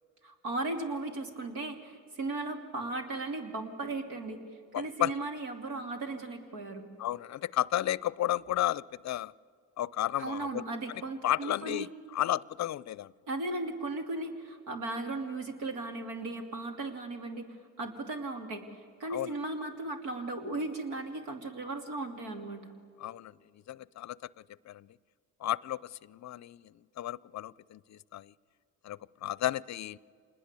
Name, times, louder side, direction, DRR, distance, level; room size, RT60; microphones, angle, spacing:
voice 1, 0.2-4.4 4.7-6.8 10.2-11.9 13.3-17.5 17.8-18.6 19.0-22.7, right 2 dB, 85° right, 5 dB, 2.9 m, -36 dB
voice 2, 4.7-5.1 7.0-9.3 9.8-10.6 11.2-13.1 19.1-19.3 23.0-23.3 23.7-24.3 24.7-24.9 25.4-28.3 28.8-30.0, left 13 dB, 45° left, 23 dB, 0.5 m, -33 dB
26.5 x 20.5 x 8.3 m, 2.2 s
supercardioid pair, 75°, 39 cm